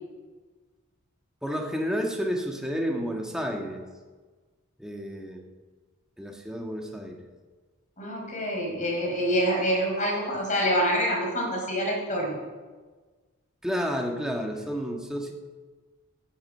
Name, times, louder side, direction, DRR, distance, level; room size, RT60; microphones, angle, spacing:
voice 1, 1.4-3.8 4.8-5.5 6.2-7.2 13.6-15.3, equal, 5° right, 1 dB, 1.6 m, -31 dB
voice 2, 8.0-12.4, equal, 35° left, -1 dB, 4.9 m, -26 dB
13.5 x 8.9 x 8.7 m, 1.4 s
head